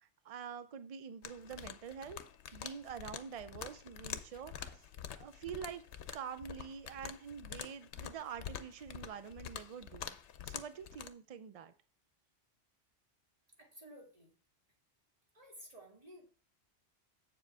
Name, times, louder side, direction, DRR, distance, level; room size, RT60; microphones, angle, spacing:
voice 1, 0.0-2.2 2.5-4.8 5.2-5.8 6.1-10.2 10.4-11.7, right 7 dB, 60° right, 12 dB, 0.3 m, -46 dB
sound 1, 1.2-11.1, left 9 dB, 80° left, 0.9 m, -47 dB
voice 2, 13.6-14.3 15.3-16.3, right 1 dB, 35° right, -2 dB, 2.5 m, -54 dB
7.8 x 7.3 x 3.4 m, 0.39 s
omnidirectional pair, 1.1 m